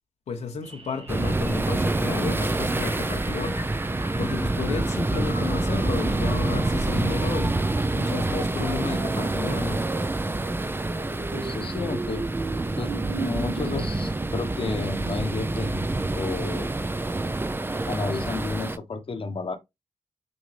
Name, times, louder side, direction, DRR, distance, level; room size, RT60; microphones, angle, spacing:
voice 1, 0.3-3.6 4.2-9.9, left 5 dB, 85° left, 1.0 m, -32 dB
sound 1, 0.6-16.9, right 3 dB, 55° right, 1.4 m, -39 dB
sound 2, 1.1-18.8, right 2 dB, 20° right, 0.5 m, -27 dB
voice 2, 11.3-12.3 12.8-15.8 16.1-16.7 17.9-19.6, left 4 dB, 50° left, 1.0 m, -32 dB
6.2 x 2.6 x 3.2 m
cardioid pair, 55°, 11 cm